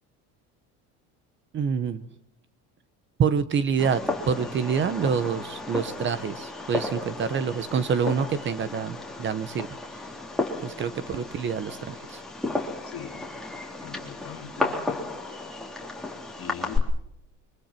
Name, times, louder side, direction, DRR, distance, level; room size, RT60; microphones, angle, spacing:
voice 1, 1.5-2.0 3.2-9.7 10.6-12.2, right 6 dB, 35° right, 14 dB, 1.0 m, -27 dB
Fireworks, 3.8-16.8, left 2 dB, ahead, 3.6 m, -33 dB
voice 2, 12.8-13.2 13.8-15.2 16.4-17.0, left 9 dB, 40° left, 6 dB, 2.3 m, -42 dB
30.0 x 25.0 x 4.4 m, 0.76 s
cardioid pair, 135°, 33 cm